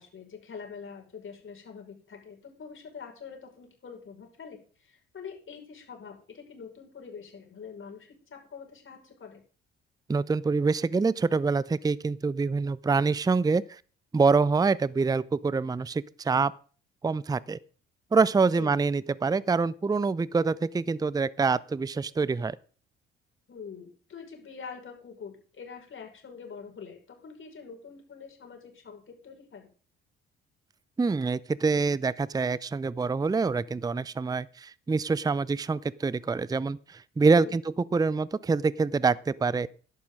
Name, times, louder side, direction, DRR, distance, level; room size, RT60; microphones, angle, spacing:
voice 1, 0.0-9.4 18.6-18.7 23.5-29.7 37.4-37.6, left 6 dB, 45° left, 5.7 m, -45 dB
voice 2, 10.1-13.8 14.1-16.5 17.0-17.6 18.1-22.6 31.0-39.7, right 4 dB, 15° right, 0.6 m, -26 dB
15.0 x 11.5 x 3.8 m
hypercardioid pair, 50°, 29 cm